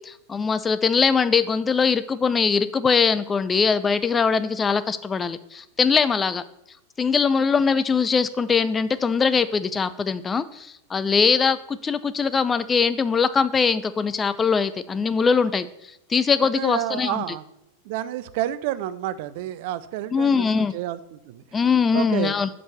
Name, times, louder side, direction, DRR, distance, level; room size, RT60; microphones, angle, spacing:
voice 1, 0.0-6.4 7.0-15.7 16.1-17.4 20.1-20.7 21.5-22.5, left 5 dB, 15° left, 14 dB, 0.4 m, -22 dB
voice 2, 16.4-17.4 17.8-21.4 21.9-22.3, right 13 dB, 50° right, 14 dB, 0.4 m, -29 dB
5.4 x 5.2 x 6.5 m, 0.80 s
figure-of-eight pair, 90°, 0 cm